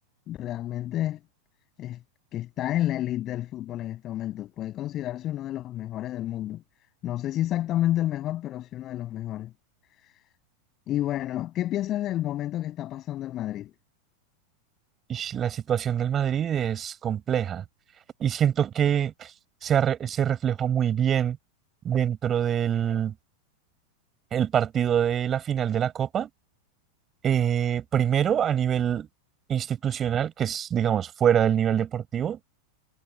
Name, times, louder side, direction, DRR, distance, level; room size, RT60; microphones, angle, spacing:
voice 1, 0.3-1.2 1.8-2.0 2.3-6.6 7.0-9.5 10.9-13.7, left 13 dB, 35° left, 6.8 m, -30 dB
voice 2, 15.1-17.6 18.2-19.3 19.6-21.4 21.8-23.1 24.3-26.3 27.2-29.1 29.5-32.4, right 9 dB, 25° right, 6.0 m, -25 dB
figure-of-eight pair, 90°, 0 cm